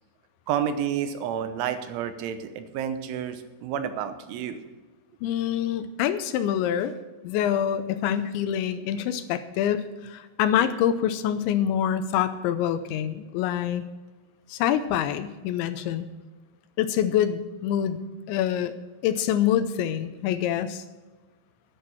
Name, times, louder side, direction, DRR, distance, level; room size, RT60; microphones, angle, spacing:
voice 1, 0.5-4.6, right 9 dB, 85° right, 9 dB, 3.4 m, -30 dB
voice 2, 5.2-6.9 7.2-13.8 14.5-16.1 16.8-18.0 18.3-18.7 19.0-20.8, left 10 dB, 85° left, 11 dB, 2.9 m, -26 dB
11.5 x 11.0 x 5.9 m, 1.2 s
omnidirectional pair, 5.5 m